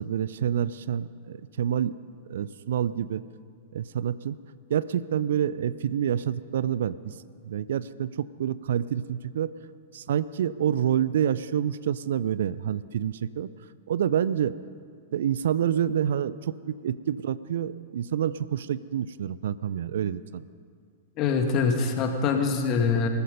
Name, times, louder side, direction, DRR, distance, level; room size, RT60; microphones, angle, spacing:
voice 1, 0.0-1.9 2.3-3.2 3.7-4.4 4.7-7.1 7.4-9.5 9.9-13.5 13.9-14.6 15.1-20.4, right 9 dB, 60° right, 17 dB, 0.5 m, -27 dB
voice 2, 21.2-23.1, left 5 dB, 35° left, 4 dB, 2.1 m, -24 dB
18.5 x 14.0 x 5.4 m, 2.1 s
figure-of-eight pair, 100°, 0 cm